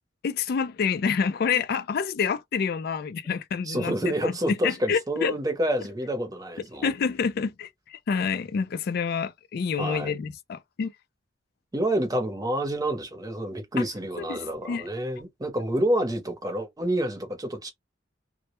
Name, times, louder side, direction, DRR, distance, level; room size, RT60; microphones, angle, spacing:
voice 1, 0.2-5.3 6.8-10.9 14.2-14.4 14.7-14.8, left 6 dB, 55° left, 0.3 m, -28 dB
voice 2, 3.6-6.9 9.8-10.1 11.7-17.7, right 1 dB, 20° right, 0.7 m, -28 dB
2.1 x 2.0 x 2.8 m
head